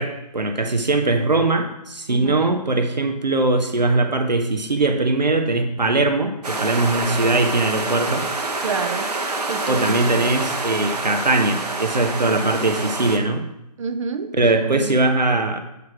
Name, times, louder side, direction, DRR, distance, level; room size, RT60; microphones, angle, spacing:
voice 1, 0.0-8.2 9.7-13.5 14.4-15.6, right 2 dB, 90° right, 6 dB, 1.0 m, -21 dB
sound 1, 6.4-13.2, right 2 dB, 70° right, 1.1 m, -27 dB
voice 2, 8.6-9.1 9.5-10.2 13.8-14.9, right 5 dB, 45° right, 10 dB, 0.7 m, -29 dB
8.2 x 5.0 x 4.8 m, 0.88 s
figure-of-eight pair, 145°, 21 cm